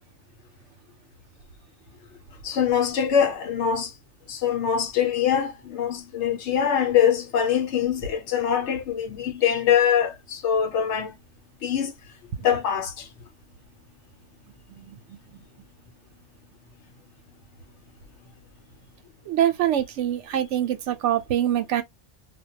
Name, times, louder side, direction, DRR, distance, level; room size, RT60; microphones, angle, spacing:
voice 1, 2.4-3.9 4.3-11.2 11.6-11.9 12.4-13.1, left 8 dB, 75° left, 1.0 m, -23 dB
voice 2, 19.3-21.8, right 11 dB, 85° right, 0.9 m, -24 dB
2.2 x 2.2 x 2.7 m
omnidirectional pair, 1.2 m